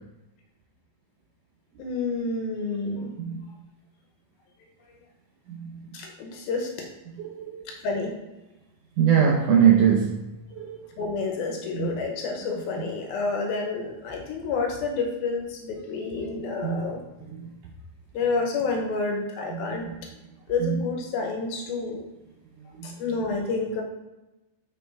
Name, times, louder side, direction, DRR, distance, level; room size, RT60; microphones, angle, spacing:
voice 1, 1.8-3.1 5.9-6.7 7.8-8.1 11.0-17.0 18.1-19.9 20.5-22.0 22.8-23.8, left 4 dB, 75° left, 1 dB, 2.7 m, -29 dB
voice 2, 5.5-5.8 7.2-7.7 9.0-10.8 11.7-11.9 16.6-16.9 17.2-17.5 19.5-19.9 20.6-20.9 22.8-22.9, right 8 dB, 75° right, -1 dB, 2.0 m, -23 dB
7.5 x 5.4 x 3.4 m, 1.0 s
omnidirectional pair, 4.5 m